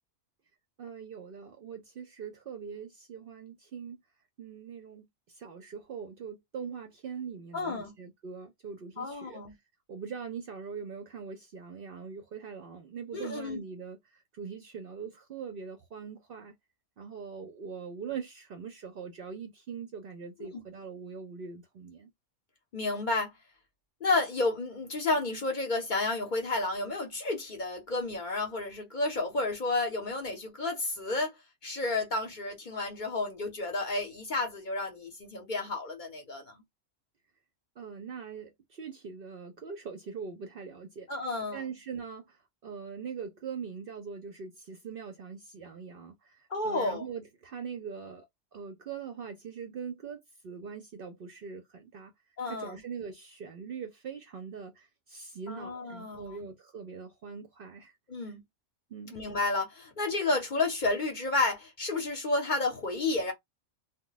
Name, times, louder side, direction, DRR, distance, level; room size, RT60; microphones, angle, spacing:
voice 1, 0.8-4.0 4.4-9.4 9.9-16.5 17.0-22.1 37.8-41.1 41.5-42.4 42.6-48.3 48.5-52.1 52.5-57.9 58.3-58.4 58.9-59.2, right 6 dB, 60° right, 0.6 m, -42 dB
voice 2, 7.5-7.9 9.0-9.5 13.1-13.6 20.4-20.6 22.7-23.3 24.0-31.3 31.6-36.6 41.1-41.7 46.5-47.1 52.4-52.8 55.5-56.5 58.1-58.4 59.1-63.3, left 3 dB, 45° left, 0.7 m, -31 dB
2.2 x 2.1 x 3.8 m
omnidirectional pair, 1.3 m